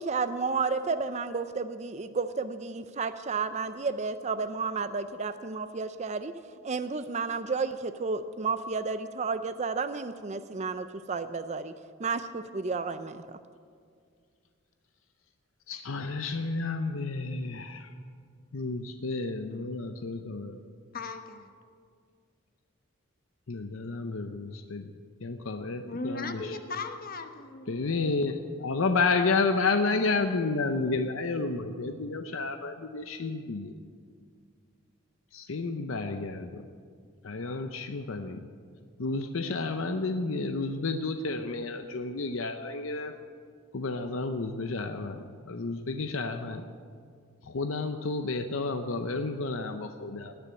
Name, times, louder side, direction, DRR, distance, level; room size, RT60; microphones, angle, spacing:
voice 1, 0.0-6.3 6.6-11.7 12.0-13.4, right 4 dB, 35° right, 11 dB, 0.5 m, -32 dB
voice 2, 15.7-17.9 18.5-20.6 23.5-24.9 25.2-26.6 27.7-28.3 28.6-33.7 35.3-36.6 37.2-38.5 39.0-43.1 43.7-46.7 47.4-50.3, left 3 dB, 70° left, 7 dB, 0.7 m, -31 dB
voice 3, 20.9-21.5 25.9-28.2, left 3 dB, 45° left, 7 dB, 1.1 m, -38 dB
18.5 x 7.0 x 9.7 m, 2.1 s
head